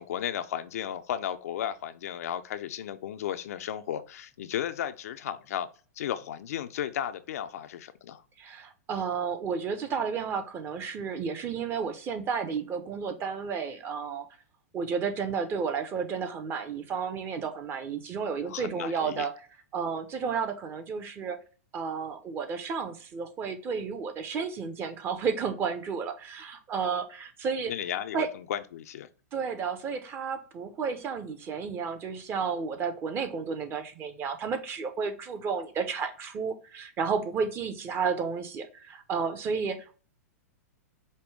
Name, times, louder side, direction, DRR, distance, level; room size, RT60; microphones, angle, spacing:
voice 1, 0.0-5.7 6.0-8.2 18.4-19.3 27.7-29.1, left 10 dB, 70° left, 0.5 m, -34 dB
voice 2, 8.4-14.3 14.7-19.4 19.7-21.4 21.7-27.7 28.1-28.3 29.3-39.9, right 6 dB, 30° right, 0.8 m, -32 dB
5.2 x 2.2 x 3.3 m
hypercardioid pair, 120°, 8 cm